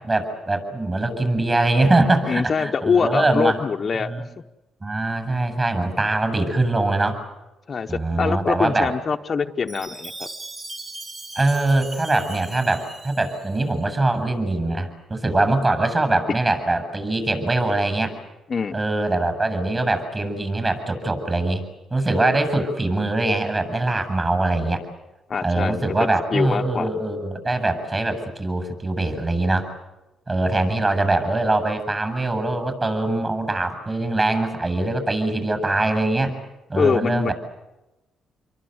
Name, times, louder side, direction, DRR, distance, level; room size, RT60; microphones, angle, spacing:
voice 1, 0.0-3.6 4.0-4.3 4.8-7.2 7.9-8.9 11.4-18.2 18.7-21.6 21.9-24.8 25.4-29.7 30.3-36.3 36.7-37.3, right 2 dB, 25° right, 9 dB, 7.8 m, -22 dB
voice 2, 2.2-4.3 7.7-10.3 18.5-18.7 25.3-25.9 26.3-26.9 36.8-37.3, left 5 dB, 40° left, 5 dB, 1.0 m, -23 dB
Chime, 9.7-13.8, right 2 dB, 45° right, 4.5 m, -38 dB
27.5 x 23.0 x 8.0 m, 1.0 s
cardioid pair, 90°, 0 cm